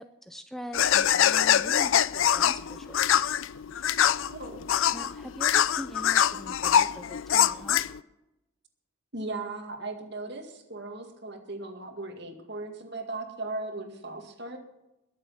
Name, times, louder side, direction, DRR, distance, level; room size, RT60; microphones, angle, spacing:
voice 1, 0.0-3.3 4.9-7.8, equal, ahead, 8 dB, 0.5 m, -42 dB
sound 1, 0.7-8.0, left 9 dB, 65° left, 0.4 m, -24 dB
voice 2, 4.2-4.6 9.1-14.6, right 2 dB, 50° right, 5 dB, 2.1 m, -37 dB
21.5 x 7.4 x 5.7 m, 0.94 s
head